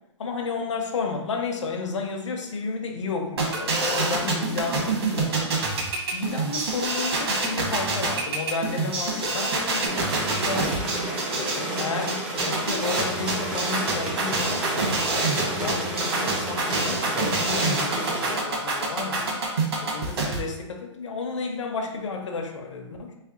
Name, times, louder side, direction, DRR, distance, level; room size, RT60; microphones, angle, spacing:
voice 1, 0.2-10.7 11.3-15.0 15.5-19.4 19.8-23.1, left 4 dB, 80° left, 2 dB, 0.7 m, -32 dB
sound 1, 3.4-20.4, right 3 dB, 55° right, 1.1 m, -26 dB
sound 2, 9.8-18.4, right 1 dB, 5° right, 0.3 m, -30 dB
3.3 x 3.0 x 3.8 m, 0.91 s
hypercardioid pair, 165°, 15 cm